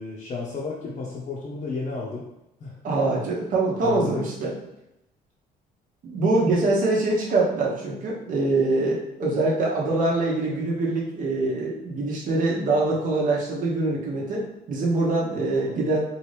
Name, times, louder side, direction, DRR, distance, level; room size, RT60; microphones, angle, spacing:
voice 1, 0.0-2.3 2.6-2.8 3.8-4.3 15.4-15.9, left 4 dB, 40° left, -5 dB, 0.7 m, -33 dB
voice 2, 2.8-4.5 6.0-16.0, right 2 dB, 50° right, -3 dB, 0.9 m, -24 dB
3.0 x 2.6 x 3.3 m, 0.88 s
cardioid pair, 110°, 17 cm